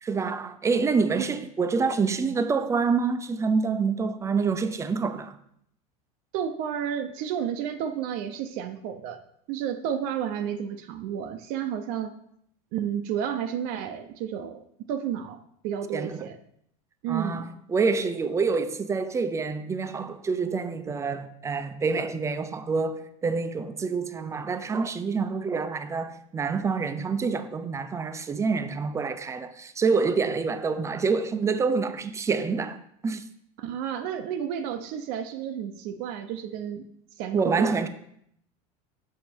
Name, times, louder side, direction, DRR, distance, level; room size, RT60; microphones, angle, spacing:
voice 1, 0.0-5.4 15.9-16.2 17.1-33.2 37.3-37.9, right 4 dB, 15° right, 0.5 m, -27 dB
voice 2, 6.3-9.2 9.5-12.1 12.7-15.4 15.6-16.4 17.0-17.4 33.6-36.9 37.2-37.9, right 9 dB, 60° right, 0.6 m, -31 dB
6.4 x 5.4 x 4.4 m
supercardioid pair, 115°, 18 cm